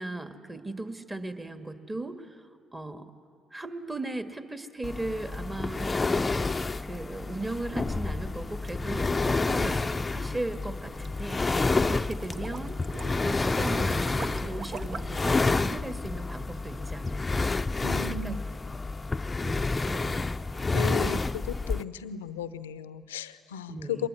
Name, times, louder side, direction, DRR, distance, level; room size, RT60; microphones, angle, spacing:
voice 1, 0.0-3.1 3.5-5.9 6.8-9.8 10.1-12.8 13.2-18.6 19.4-20.3 23.7-24.1, right 2 dB, 20° right, 7 dB, 1.9 m, -37 dB
sound 1, 4.8-21.8, left 3 dB, 25° left, 0.6 m, -29 dB
sound 2, 9.2-15.3, right 5 dB, 50° right, 1.0 m, -42 dB
voice 2, 17.8-18.4 20.7-24.1, left 7 dB, 85° left, 15 dB, 0.6 m, -36 dB
24.5 x 21.5 x 9.7 m, 2.5 s
hypercardioid pair, 50°, 0 cm